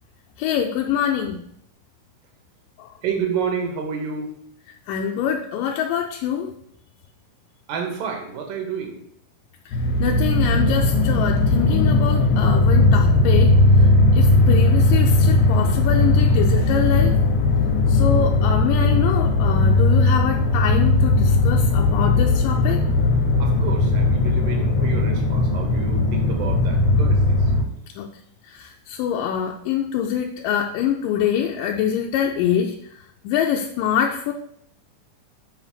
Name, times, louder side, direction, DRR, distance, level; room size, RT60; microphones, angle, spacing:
voice 1, 0.4-1.4 2.8-2.9 4.9-6.5 9.7-17.2 17.9-22.8 28.0-28.1 28.5-32.8 33.2-34.3, left 8 dB, 90° left, 1 dB, 2.2 m, -25 dB
voice 2, 3.0-4.3 7.7-9.0 18.1-18.3 23.4-27.4, right 6 dB, 85° right, 2 dB, 2.9 m, -29 dB
sound 1, 9.7-27.6, left 2 dB, 70° left, 2.4 m, -18 dB
6.8 x 4.0 x 5.9 m, 0.69 s
omnidirectional pair, 3.8 m